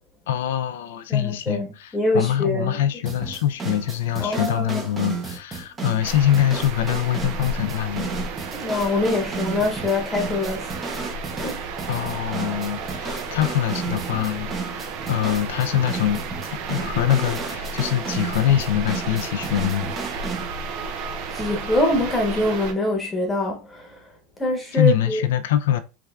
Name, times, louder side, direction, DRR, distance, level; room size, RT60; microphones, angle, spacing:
voice 1, 0.3-8.1 11.9-16.2 16.4-19.9 24.7-25.8, left 11 dB, 80° left, 0.5 m, -24 dB
voice 2, 1.1-2.8 4.2-4.9 8.5-10.8 11.4-11.6 21.3-23.9 24.4-25.2, left 1 dB, 15° left, 1.0 m, -24 dB
sound 1, 3.1-20.5, right 4 dB, 20° right, 0.8 m, -33 dB
sound 2, 6.0-22.7, right 4 dB, 55° right, 0.5 m, -33 dB
3.4 x 3.3 x 2.3 m
supercardioid pair, 115°, 0 cm